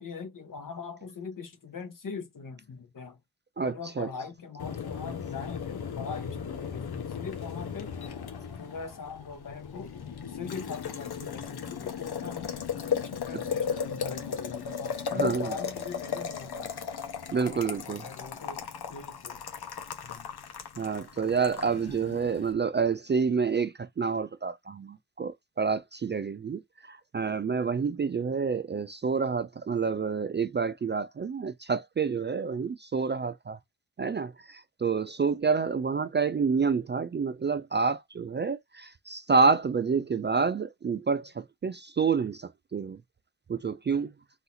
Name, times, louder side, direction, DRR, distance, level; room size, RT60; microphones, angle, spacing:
voice 1, 0.0-3.2 3.6-7.9 8.6-10.0 10.3-12.5 13.0-16.7 17.4-19.4 20.0-20.3, left 5 dB, 55° left, 1.4 m, -41 dB
voice 2, 3.6-4.1 13.3-13.4 15.1-15.6 17.3-18.1 20.8-33.6 34.0-43.0 43.5-44.1, right 5 dB, 30° right, 0.3 m, -28 dB
Boiling, 4.6-22.5, left 6 dB, 75° left, 1.2 m, -36 dB
4.1 x 2.7 x 4.0 m
wide cardioid pair, 90°, 38 cm